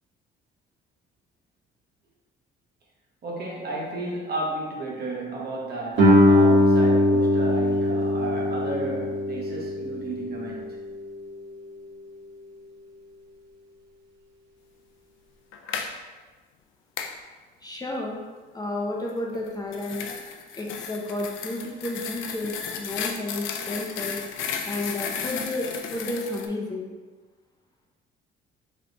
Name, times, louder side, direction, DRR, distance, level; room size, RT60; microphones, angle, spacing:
voice 1, 3.2-10.8, right 2 dB, 55° right, -3 dB, 1.1 m, -33 dB
Guitar, 6.0-11.3, left 1 dB, 70° right, 1.4 m, -21 dB
sound 1, 15.5-15.9 17.0-17.2 19.3-26.5, left 6 dB, 80° left, 0.5 m, -34 dB
voice 2, 17.6-18.2 18.5-20.0 20.6-24.2 24.7-26.9, left 2 dB, 20° left, -2 dB, 0.7 m, -31 dB
3.3 x 3.2 x 3.9 m, 1.4 s
cardioid pair, 95°, 20 cm